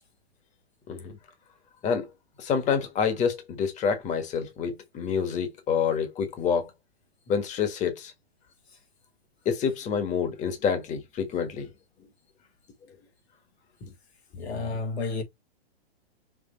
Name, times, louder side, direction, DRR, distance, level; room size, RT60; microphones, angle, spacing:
voice 1, 2.4-6.7 7.3-8.1 9.4-11.7, left 6 dB, 25° left, 1.5 m, -27 dB
voice 2, 14.4-15.2, left 3 dB, 80° left, 3.0 m, -31 dB
6.1 x 3.5 x 4.4 m
hypercardioid pair, 130°, 32 cm